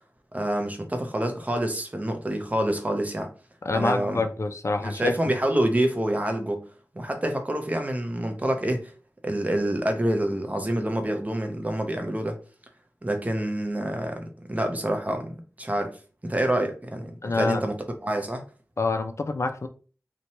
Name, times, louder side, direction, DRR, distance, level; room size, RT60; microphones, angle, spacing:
voice 1, 0.3-3.3 3.7-4.2 4.8-6.6 6.9-8.9 9.2-12.4 13.0-18.4, right 1 dB, 25° right, 0.6 m, -27 dB
voice 2, 3.6-5.4 17.2-17.6 18.8-19.7, left 3 dB, 50° left, 0.3 m, -26 dB
2.8 x 2.1 x 2.8 m
wide cardioid pair, 60°, 6 cm